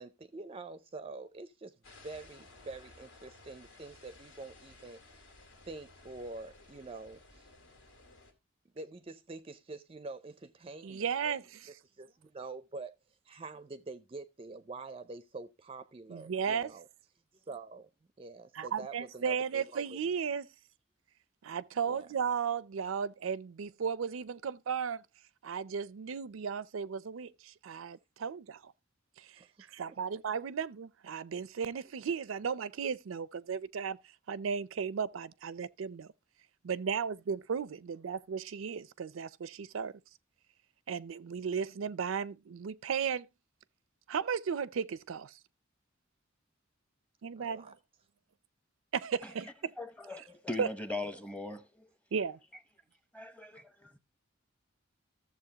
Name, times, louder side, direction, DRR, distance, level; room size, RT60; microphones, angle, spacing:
voice 1, 0.0-1.7 2.0-5.0 5.6-7.5 8.7-12.9 13.3-16.9 17.5-17.9 18.2-20.0 21.9-22.1 29.3-29.7 47.4-47.7, right 3 dB, 30° right, 0.5 m, -46 dB
sound 1, 1.8-8.3, left 2 dB, 75° left, 2.3 m, -57 dB
voice 2, 10.8-11.7 16.1-16.7 18.5-20.5 21.4-25.0 25.4-28.7 29.7-34.0 34.3-36.1 36.6-39.9 40.9-43.3 44.1-45.3 47.2-47.6 48.9-49.7 50.6-50.7 52.1-52.4, right 6 dB, 85° right, 0.5 m, -35 dB
voice 3, 49.8-51.9 53.2-54.0, left 2 dB, 5° left, 0.9 m, -40 dB
14.0 x 7.1 x 2.8 m
head